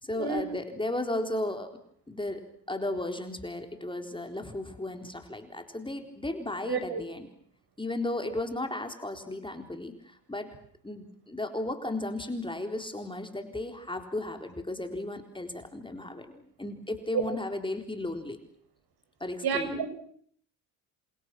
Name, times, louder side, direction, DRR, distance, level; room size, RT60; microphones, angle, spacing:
voice 1, 0.0-1.7 2.1-7.3 7.8-10.5 10.8-18.4 19.2-19.8, left 2 dB, 10° left, 5 dB, 4.0 m, -35 dB
voice 2, 6.7-7.0 17.1-17.2 19.4-19.9, right 6 dB, 50° right, 10 dB, 6.2 m, -29 dB
28.5 x 27.5 x 6.2 m, 0.63 s
supercardioid pair, 80°, 47 cm